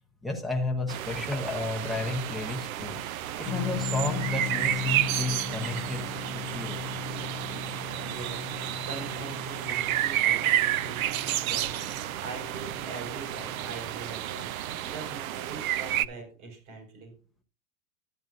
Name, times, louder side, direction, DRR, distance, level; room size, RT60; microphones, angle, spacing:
voice 1, 0.2-3.0 3.4-6.0 6.3-6.9, left 2 dB, ahead, 0 dB, 0.7 m, -32 dB
sound 1, 0.9-16.0, right 12 dB, 60° right, 0.5 m, -31 dB
sound 2, 3.4-14.0, left 8 dB, 25° left, 0.3 m, -38 dB
voice 2, 8.0-17.1, right 4 dB, 40° right, 2 dB, 4.9 m, -43 dB
12.0 x 9.5 x 2.4 m, 0.36 s
hypercardioid pair, 145°, 50 cm